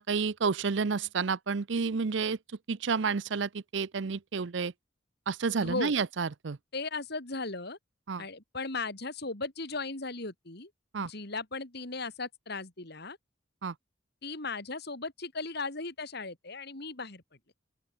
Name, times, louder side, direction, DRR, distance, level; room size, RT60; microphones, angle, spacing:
voice 1, 0.0-2.4 2.7-4.7 5.3-6.6 8.1-8.2 10.9-11.1 13.6-13.7, right 5 dB, 65° right, 0.6 m, -30 dB
voice 2, 5.6-5.9 6.7-7.8 8.2-10.7 11.0-13.2 14.2-17.2, left 3 dB, 55° left, 2.9 m, -37 dB
open air
head